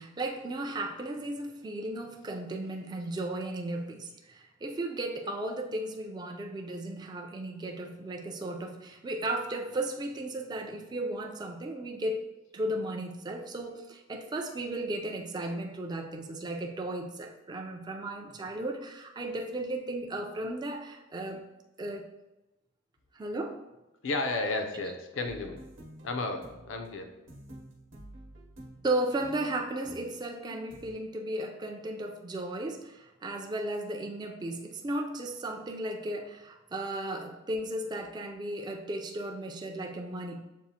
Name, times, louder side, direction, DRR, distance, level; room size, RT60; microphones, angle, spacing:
voice 1, 0.0-21.5 21.8-22.1 23.1-23.6 28.8-40.4, right 1 dB, 20° right, 2 dB, 0.3 m, -35 dB
voice 2, 24.0-25.6 26.0-27.1, left 3 dB, 70° left, 5 dB, 0.5 m, -33 dB
sound 1, 25.2-30.9, right 1 dB, 75° right, 0.9 m, -50 dB
7.0 x 2.4 x 2.7 m, 1.0 s
head